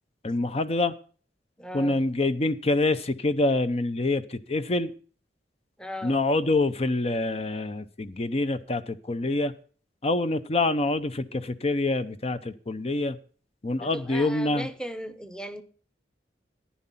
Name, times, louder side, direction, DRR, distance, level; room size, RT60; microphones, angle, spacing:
voice 1, 0.2-0.9 1.7-4.9 6.0-9.5 10.0-13.2 13.6-14.7, left 2 dB, 35° left, 0.7 m, -26 dB
voice 2, 1.6-2.0 5.8-6.2 13.8-15.6, equal, 5° left, 0.9 m, -37 dB
11.5 x 10.0 x 5.6 m
head